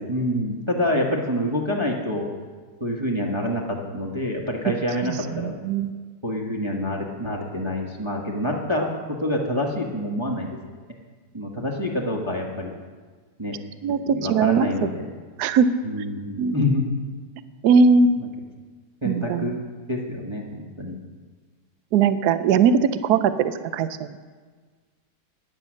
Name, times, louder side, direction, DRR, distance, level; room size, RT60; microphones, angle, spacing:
voice 1, 0.1-2.3 2.8-5.5 6.2-10.6 11.3-12.7 13.4-13.6 14.1-15.0 15.8-17.0 18.2-18.3 19.0-19.6 19.9-21.0, left 1 dB, 20° right, -2 dB, 1.3 m, -27 dB
voice 2, 5.1-5.9 13.8-14.9 15.4-15.7 16.4-16.6 17.6-18.2 19.0-19.5 21.9-24.1, right 5 dB, 70° right, 12 dB, 1.2 m, -20 dB
14.5 x 10.0 x 6.3 m, 1.5 s
omnidirectional pair, 1.8 m